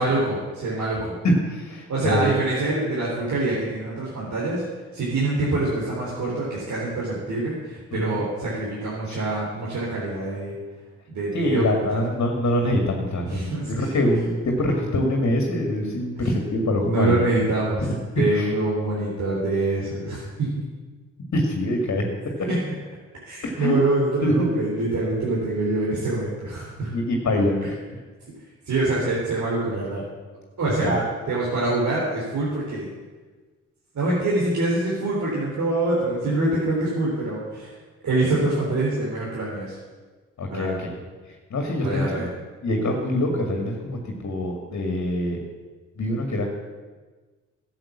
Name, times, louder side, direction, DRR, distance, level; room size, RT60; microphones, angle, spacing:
voice 1, 0.0-1.2 1.9-4.6 4.9-10.5 11.1-12.0 13.2-13.9 16.2-16.3 16.8-17.8 18.2-20.6 22.5-22.6 23.3-26.9 28.7-30.1 30.6-32.9 33.9-37.7 38.0-39.8 40.5-40.8 41.8-42.3, right 2 dB, 60° right, -6 dB, 3.5 m, -25 dB
voice 2, 1.2-2.2 7.9-8.2 9.1-9.2 11.3-17.2 17.8-17.9 18.3-18.5 21.3-22.0 22.4-22.5 23.4-23.7 24.2-24.5 26.9-27.6 30.8-30.9 40.4-40.9 41.5-42.1 42.6-45.4 46.0-46.5, left 1 dB, 50° left, 2 dB, 2.3 m, -24 dB
12.0 x 7.5 x 7.3 m, 1.3 s
hypercardioid pair, 45°, 33 cm